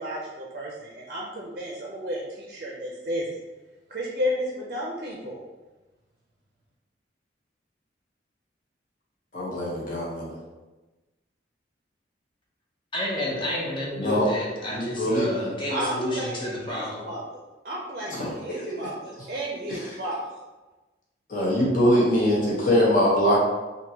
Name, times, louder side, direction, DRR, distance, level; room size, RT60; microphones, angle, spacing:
voice 1, 0.0-3.4 3.9-5.4 15.7-20.4, equal, 50° right, -2 dB, 0.5 m, -33 dB
voice 2, 9.3-10.4 14.0-14.3 14.7-15.5 18.1-18.7 19.7-19.8 21.3-23.4, equal, 45° left, -5 dB, 1.0 m, -23 dB
voice 3, 12.9-17.0, left 1 dB, 25° left, -4 dB, 0.7 m, -30 dB
3.5 x 2.7 x 2.8 m, 1.2 s
head